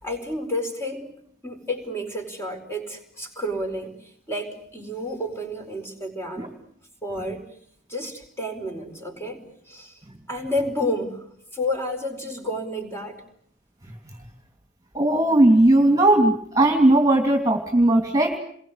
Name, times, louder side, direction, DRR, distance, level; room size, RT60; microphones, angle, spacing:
voice 1, 0.0-6.6 7.0-7.5 7.9-10.0 10.3-13.2, left 1 dB, 15° left, 4.7 m, -31 dB
voice 2, 14.9-18.4, right 1 dB, 15° right, 2.9 m, -17 dB
28.5 x 22.5 x 8.3 m
head